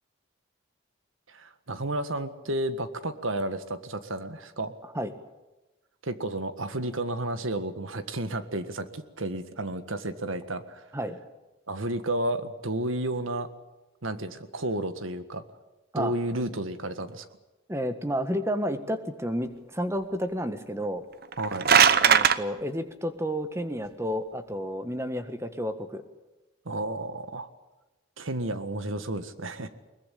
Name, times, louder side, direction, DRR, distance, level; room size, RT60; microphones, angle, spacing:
voice 1, 1.3-4.7 6.0-10.9 11.7-13.5 14.0-15.4 16.0-17.3 21.4-21.7 26.7-27.5 28.2-29.7, right 1 dB, 90° right, 11 dB, 1.8 m, -32 dB
voice 2, 17.7-21.0 22.0-26.0, equal, 15° right, 9 dB, 1.6 m, -31 dB
sound 1, 21.2-22.4, right 7 dB, 50° right, 0.9 m, -19 dB
22.0 x 20.5 x 8.6 m, 1.1 s
head